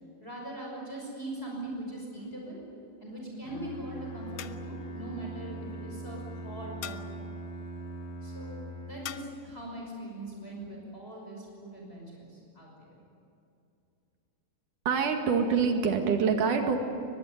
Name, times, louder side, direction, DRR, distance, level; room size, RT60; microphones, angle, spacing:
voice 1, 0.2-2.6 3.0-7.3 8.2-13.0, right 1 dB, 15° left, -2 dB, 5.9 m, -41 dB
sound 1, 2.2-2.7 4.4-4.9 6.8-7.3 9.1-9.5, left 11 dB, 85° left, 1.3 m, -44 dB
Bowed string instrument, 3.4-9.3, right 1 dB, 45° left, 4.5 m, -41 dB
voice 2, 14.9-16.8, right 6 dB, 70° right, 4 dB, 3.4 m, -25 dB
23.0 x 20.0 x 9.6 m, 2.7 s
omnidirectional pair, 3.8 m